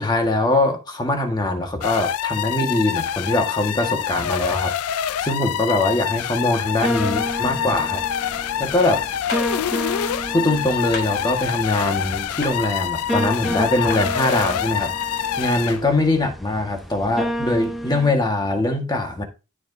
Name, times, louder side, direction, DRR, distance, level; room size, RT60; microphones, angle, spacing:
voice 1, 0.0-8.0 8.6-9.1 10.3-14.9 15.4-19.2, left 2 dB, 20° left, 1.4 m, -22 dB
sound 1, 1.8-15.9, left 10 dB, 80° left, 0.4 m, -26 dB
sound 2, 6.8-18.1, equal, ahead, 0.6 m, -31 dB
sound 3, 9.3-9.5 10.9-11.1 12.4-12.6 13.9-14.0, left 3 dB, 50° left, 3.9 m, -30 dB
13.0 x 4.6 x 2.6 m
head